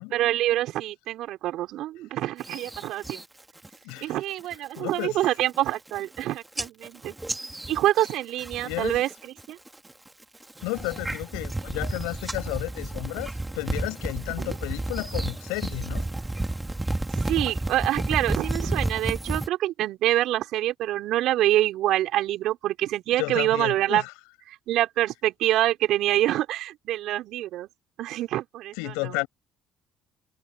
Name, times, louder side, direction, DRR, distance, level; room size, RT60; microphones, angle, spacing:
voice 1, 0.1-3.2 4.0-7.1 7.7-9.6 14.4-14.5 17.2-24.0 24.5-27.7 28.0-28.7 29.0-29.2, right 14 dB, 70° right, 5.1 m, -26 dB
sound 1, 2.4-3.2 3.6-4.0 4.4-4.8 5.2-5.3 5.5-6.2 6.6-9.1 9.4-9.9 10.4-19.5, right 2 dB, 15° right, 2.9 m, -31 dB
voice 2, 4.8-5.2 8.6-9.0 10.6-16.1 23.2-24.1 28.8-29.3, left 29 dB, 80° left, 6.0 m, -32 dB
hypercardioid pair, 55°, 0 cm